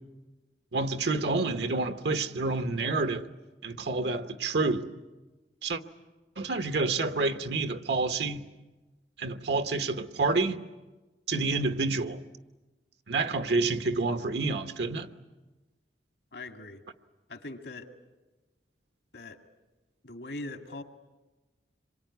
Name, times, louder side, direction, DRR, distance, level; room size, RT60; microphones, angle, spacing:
voice 1, 0.7-3.3 3.6-4.8 5.6-5.8 6.4-8.5 9.2-10.6 11.3-12.2 13.1-15.1, right 3 dB, 75° right, 1.2 m, -28 dB
voice 2, 16.3-16.8 17.3-17.9 19.1-19.4 20.0-20.8, left 2 dB, 75° left, 2.1 m, -41 dB
26.5 x 23.0 x 9.5 m
head